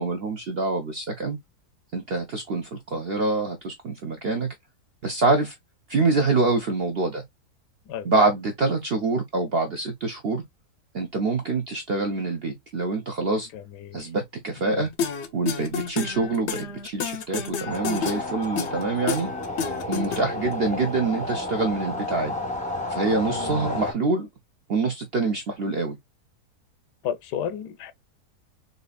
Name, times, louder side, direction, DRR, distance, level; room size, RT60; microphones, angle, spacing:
voice 1, 0.0-1.4 1.9-4.5 5.0-5.5 5.9-7.2 8.1-10.4 10.9-13.5 13.9-14.9 15.3-19.3 19.9-22.4 22.9-24.3 24.7-26.0, right 3 dB, 65° right, 0.6 m, -25 dB
voice 2, 13.5-14.0 14.6-14.9 23.2-23.7 27.0-27.9, left 9 dB, 85° left, 1.2 m, -33 dB
sound 1, 15.0-20.5, left 6 dB, 65° left, 0.7 m, -30 dB
sound 2, 17.6-23.9, left 2 dB, 5° left, 0.6 m, -31 dB
4.1 x 2.7 x 2.2 m
omnidirectional pair, 1.7 m